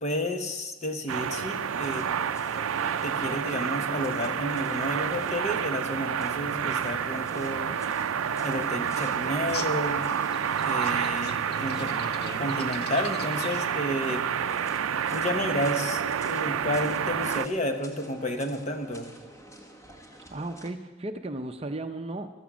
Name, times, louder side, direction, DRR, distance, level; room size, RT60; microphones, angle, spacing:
voice 1, 0.0-2.1 3.0-7.7 8.4-10.1 10.6-12.0 12.4-14.2 15.1-19.1, left 1 dB, 35° left, 6 dB, 1.3 m, -31 dB
sound 1, 1.1-17.5, right 8 dB, 85° right, 0.5 m, -29 dB
sound 2, 1.7-20.7, right 1 dB, 15° left, 1.4 m, -46 dB
sound 3, 9.3-13.8, left 6 dB, 50° left, 0.8 m, -44 dB
voice 2, 11.8-12.6 20.3-22.3, right 2 dB, 30° right, 6 dB, 0.7 m, -36 dB
15.5 x 12.5 x 6.2 m, 1.2 s
head